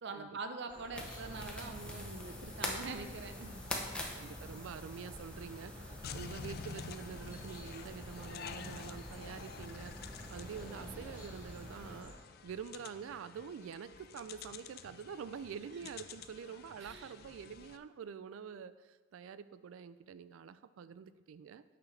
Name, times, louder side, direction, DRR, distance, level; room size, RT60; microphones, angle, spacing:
voice 1, 0.0-3.7 16.8-17.1, right 3 dB, 60° right, 7 dB, 0.7 m, -44 dB
sound 1, 0.7-12.1, equal, 10° right, 2.4 m, -53 dB
sound 2, 0.9-12.0, left 1 dB, 5° left, 0.8 m, -45 dB
voice 2, 4.1-21.6, right 7 dB, 90° right, 14 dB, 0.3 m, -47 dB
sound 3, 6.0-17.8, left 6 dB, 50° left, 0.4 m, -50 dB
8.7 x 6.0 x 3.3 m, 1.3 s
head